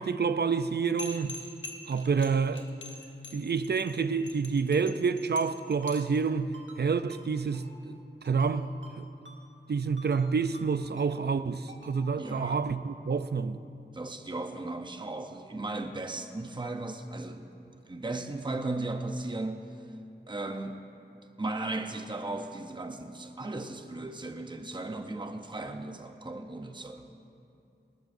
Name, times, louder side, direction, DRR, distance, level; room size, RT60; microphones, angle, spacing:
voice 1, 0.0-1.4 1.9-2.7 3.3-7.9 8.2-9.1 9.7-13.6, right 5 dB, 60° right, 0.5 m, -28 dB
sound 1, 1.0-6.2, left 3 dB, 80° left, 1.3 m, -44 dB
Ringtone, 5.8-5.9 6.5-6.8 7.1-7.2 7.5-7.7 8.3-8.5 8.8-9.0 9.3-9.4 10.0-10.2 10.5-10.7 11.0-11.1 11.7-12.0 12.3-12.4, right 2 dB, 85° right, 1.9 m, -50 dB
voice 2, 12.1-12.6 13.9-17.4 17.9-19.6 20.3-20.8 21.4-27.1, right 2 dB, 25° right, 0.8 m, -36 dB
20.5 x 18.5 x 2.7 m
wide cardioid pair, 60°, 19 cm